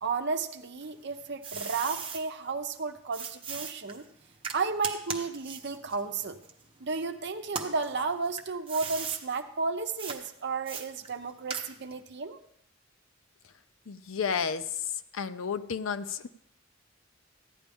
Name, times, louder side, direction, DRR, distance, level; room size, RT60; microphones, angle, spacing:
voice 1, 0.0-4.0 4.5-6.4 6.8-12.4, right 4 dB, 60° right, 7 dB, 0.8 m, -33 dB
sound 1, 0.8-2.2 3.1-7.0 7.4-9.2 10.0-10.2 10.7-12.0, right 5 dB, 30° right, 1.1 m, -39 dB
voice 2, 13.9-14.6 15.1-16.3, left 6 dB, 85° left, 12 dB, 0.5 m, -31 dB
15.0 x 10.0 x 3.5 m, 0.71 s
head